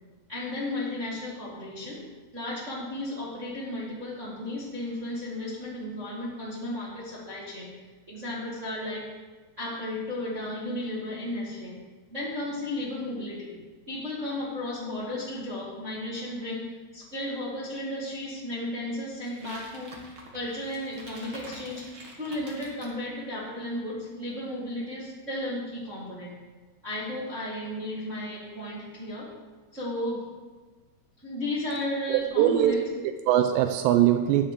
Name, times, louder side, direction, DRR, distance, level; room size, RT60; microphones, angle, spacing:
voice 1, 0.3-2.0 2.3-7.7 8.1-9.1 9.6-11.7 12.1-13.6 13.9-20.0 20.3-21.9 22.2-26.3 26.8-29.3 29.7-30.2 31.2-32.8, left 1 dB, 40° right, -7 dB, 1.0 m, -34 dB
sound 1, 19.2-23.0, right 2 dB, 65° right, 1.2 m, -47 dB
voice 2, 32.1-32.8 33.0-34.5, right 11 dB, 90° right, 7 dB, 2.7 m, -22 dB
10.0 x 5.8 x 7.5 m, 1.4 s
omnidirectional pair, 4.9 m